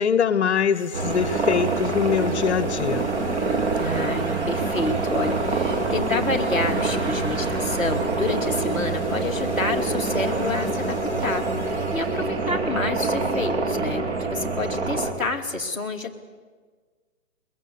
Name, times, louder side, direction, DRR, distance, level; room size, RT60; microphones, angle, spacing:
voice 1, 0.0-3.1, left 7 dB, 55° left, 15 dB, 0.9 m, -23 dB
sound 1, 0.7-12.6, left 4 dB, 20° left, 4.0 m, -39 dB
sound 2, 0.9-15.1, right 3 dB, 55° right, 3.2 m, -26 dB
voice 2, 3.7-16.1, left 2 dB, 5° right, -3 dB, 1.4 m, -29 dB
22.5 x 21.0 x 7.9 m, 1.5 s
hypercardioid pair, 165°, 41 cm